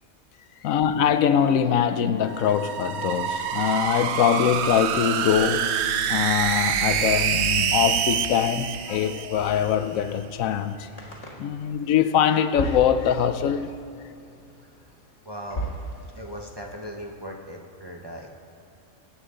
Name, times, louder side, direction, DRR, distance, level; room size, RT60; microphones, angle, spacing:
voice 1, 0.6-5.8 6.1-10.9 11.4-13.7, left 9 dB, 75° left, 1.0 m, -23 dB
sound 1, 2.3-9.8, right 9 dB, 65° right, 0.7 m, -26 dB
sound 2, 9.3-16.8, right 1 dB, 50° left, 2.0 m, -38 dB
voice 2, 15.2-15.7 16.1-18.3, equal, 20° right, 0.9 m, -38 dB
24.5 x 9.0 x 3.8 m
omnidirectional pair, 1.5 m